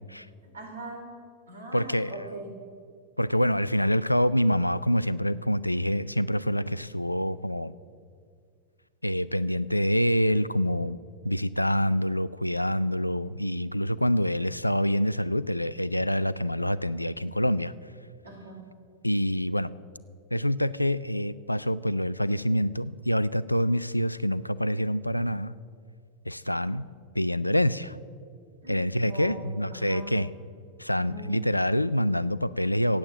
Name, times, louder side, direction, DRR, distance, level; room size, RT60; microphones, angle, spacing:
voice 1, 0.5-1.2 1.5-2.6 18.2-18.7 28.6-30.1 31.0-31.3, right 2 dB, 70° right, 3 dB, 3.1 m, -41 dB
voice 2, 1.7-2.3 3.2-7.7 9.0-11.0 11.2-17.7 19.0-19.7 20.3-25.5 26.3-26.9 27.1-28.0 28.7-30.3 30.8-33.0, equal, 85° left, 18 dB, 0.4 m, -26 dB
15.5 x 8.9 x 7.4 m, 2.2 s
figure-of-eight pair, 90°, 0 cm